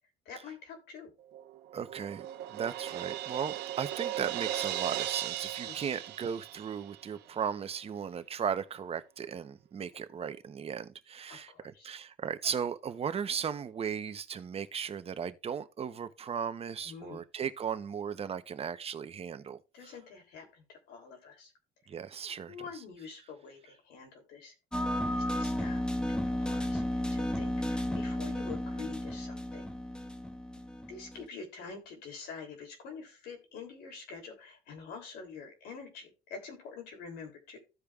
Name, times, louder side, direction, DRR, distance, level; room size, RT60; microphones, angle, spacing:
voice 1, 0.2-1.1 5.7-5.9 11.3-11.9 16.8-17.2 19.7-21.5 22.5-24.5 25.1-25.8 26.1-29.7 30.9-37.6, left 5 dB, 80° left, 3.0 m, -46 dB
Crash cymbal, 1.3-7.0, right 12 dB, 80° right, 1.0 m, -37 dB
voice 2, 1.7-19.6 21.9-22.5, right 7 dB, 35° right, 0.7 m, -36 dB
sound 1, 24.7-31.3, left 1 dB, 5° left, 1.0 m, -33 dB
15.0 x 5.1 x 2.3 m
cardioid pair, 110°, 17 cm